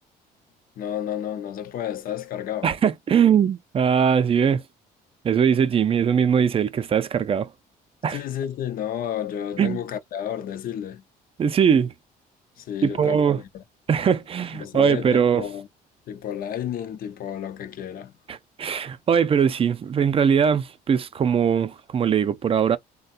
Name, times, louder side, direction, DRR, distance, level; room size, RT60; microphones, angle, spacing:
voice 1, 0.8-2.7 8.1-11.0 12.6-13.2 13.5-13.6 14.5-15.7 16.1-18.1, left 10 dB, 55° left, 0.6 m, -31 dB
voice 2, 2.6-4.6 5.2-7.5 8.0-8.2 9.6-9.8 11.4-11.9 12.8-13.4 13.9-15.5 18.3-22.8, right 7 dB, 35° right, 0.4 m, -21 dB
3.4 x 2.2 x 2.5 m
cardioid pair, 110°, 17 cm